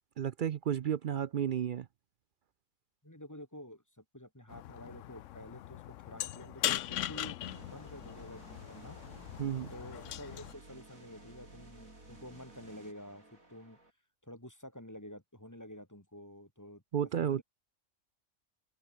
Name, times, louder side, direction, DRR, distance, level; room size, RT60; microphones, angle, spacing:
voice 1, 0.2-1.9 9.4-9.7 16.9-17.4, right 9 dB, 60° right, 0.5 m, -32 dB
voice 2, 3.0-9.0 9.7-13.8 14.2-16.8 17.2-17.4, left 1 dB, 15° left, 2.7 m, -50 dB
sound 1, 4.5-10.5, left 13 dB, 70° left, 0.9 m, -40 dB
sound 2, 7.4-13.9, right 2 dB, 85° right, 7.0 m, -54 dB
omnidirectional pair, 1.4 m